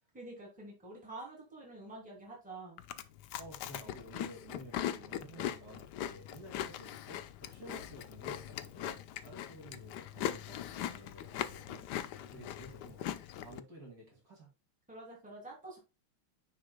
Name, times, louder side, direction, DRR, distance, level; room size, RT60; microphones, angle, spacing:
voice 1, 0.1-2.8 14.9-15.8, right 2 dB, 5° right, -2 dB, 2.5 m, -48 dB
Chewing mastication, 2.8-13.6, left 11 dB, 75° left, 0.9 m, -40 dB
voice 2, 3.4-11.8 12.3-14.5, right 1 dB, 45° right, -2 dB, 3.0 m, -53 dB
9.4 x 5.0 x 2.2 m, 0.28 s
omnidirectional pair, 2.3 m